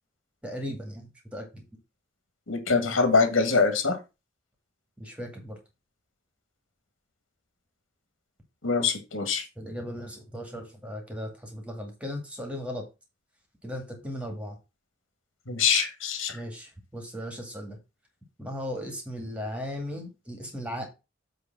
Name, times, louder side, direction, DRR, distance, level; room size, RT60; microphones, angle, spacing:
voice 1, 0.4-1.6 5.0-5.6 9.6-12.8 13.6-14.6 16.3-17.8 18.4-20.9, equal, 5° right, 3 dB, 2.1 m, -37 dB
voice 2, 2.5-4.0 8.6-9.5 15.5-16.4, left 4 dB, 85° left, 7 dB, 1.8 m, -24 dB
7.9 x 3.4 x 5.9 m, 0.27 s
head